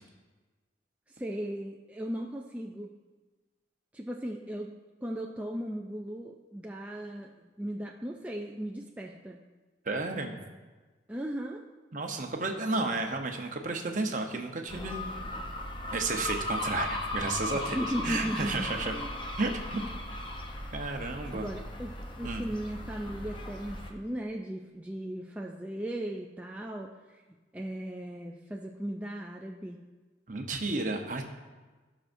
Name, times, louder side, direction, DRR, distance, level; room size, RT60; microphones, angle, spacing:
voice 1, 1.1-2.9 3.9-4.7 5.0-7.3 7.6-9.4 11.1-11.7 17.5-19.2 19.7-20.0 21.3-27.2 27.5-29.8, equal, 10° right, -1 dB, 0.4 m, -37 dB
voice 2, 9.9-10.4 11.9-15.1 15.9-17.8 18.0-18.9 19.4-19.8 20.7-21.5 22.2-22.5 30.3-31.3, right 3 dB, 45° right, 4 dB, 0.9 m, -32 dB
sound 1, 14.7-23.9, left 1 dB, 25° left, 0.8 m, -37 dB
16.5 x 6.2 x 2.6 m, 1.3 s
head